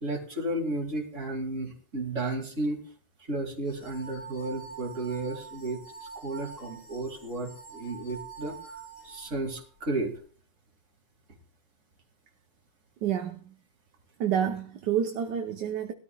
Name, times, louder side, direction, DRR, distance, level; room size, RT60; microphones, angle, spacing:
voice 1, 0.0-2.8 3.3-8.7 9.0-10.2, right 2 dB, 35° right, 2.7 m, -33 dB
sound 1, 3.7-9.5, right 5 dB, 90° left, 7.9 m, -45 dB
voice 2, 13.0-13.5 14.2-15.9, right 9 dB, 65° right, 1.2 m, -29 dB
21.0 x 13.0 x 2.3 m
omnidirectional pair, 2.4 m